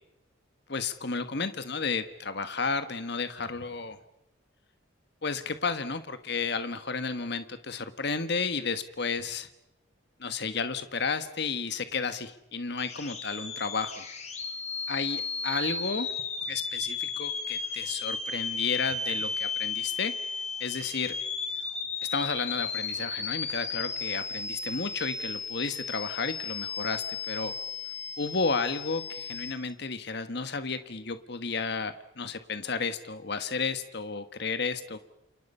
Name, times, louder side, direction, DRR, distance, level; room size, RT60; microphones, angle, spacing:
voice 1, 0.7-4.0 5.2-9.5 10.2-14.0 14.9-16.1 16.5-20.1 20.6-21.2 22.1-27.5 28.2-35.0, left 4 dB, 55° left, 10 dB, 1.3 m, -32 dB
sound 1, 12.8-29.5, left 5 dB, 35° left, 3.4 m, -34 dB
30.0 x 28.5 x 5.6 m, 0.90 s
head